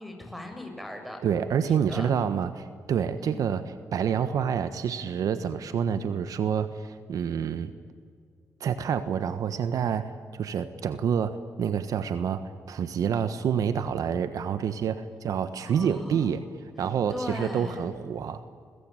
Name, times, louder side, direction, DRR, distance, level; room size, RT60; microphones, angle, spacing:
voice 1, 0.0-1.2 1.7-2.1 3.2-3.4 15.6-16.3 17.1-17.8, left 1 dB, ahead, 5 dB, 6.9 m, -38 dB
voice 2, 1.2-7.7 8.6-16.4 16.8-18.4, right 7 dB, 75° right, 11 dB, 1.3 m, -28 dB
29.5 x 21.5 x 9.0 m, 2.1 s
cardioid pair, 75°, 6 cm